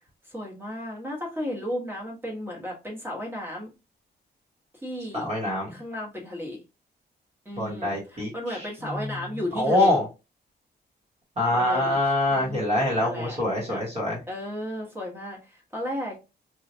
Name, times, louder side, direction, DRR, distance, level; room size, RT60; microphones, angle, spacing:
voice 1, 0.2-3.7 4.7-5.3 5.7-6.6 7.4-10.0 11.5-12.0 12.3-13.8 14.3-16.2, left 1 dB, 15° right, -1 dB, 1.0 m, -34 dB
voice 2, 5.1-5.7 7.6-8.3 9.5-10.1 11.4-14.2, left 1 dB, 40° right, -4 dB, 1.2 m, -24 dB
3.1 x 2.4 x 2.6 m, 0.28 s
wide cardioid pair, 145°, 17 cm